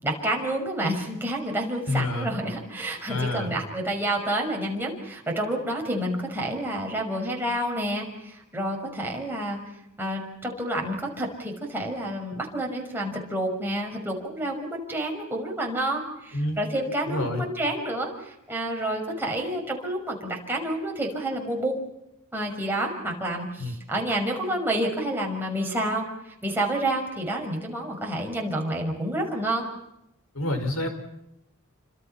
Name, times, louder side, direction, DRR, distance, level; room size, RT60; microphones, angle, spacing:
voice 1, 0.0-9.6 10.0-21.8 22.3-29.7, right 1 dB, 10° right, 0 dB, 5.9 m, -29 dB
voice 2, 1.9-2.3 3.1-3.5 16.3-16.6 17.1-17.4 23.6-23.7 30.3-30.9, left 2 dB, 90° left, 7 dB, 5.4 m, -27 dB
28.5 x 26.5 x 5.9 m, 0.85 s
head